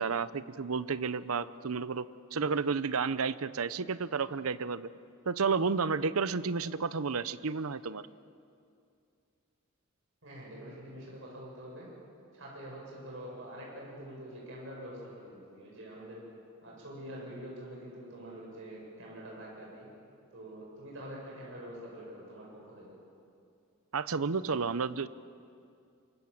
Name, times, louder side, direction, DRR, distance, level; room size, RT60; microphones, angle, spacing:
voice 1, 0.0-4.9 5.2-8.1 23.9-25.1, right 5 dB, 90° right, 15 dB, 0.7 m, -31 dB
voice 2, 10.2-11.9 12.3-16.2 16.6-19.9 20.3-22.9, equal, 65° right, -4 dB, 7.8 m, -45 dB
25.5 x 24.0 x 7.3 m, 2.5 s
head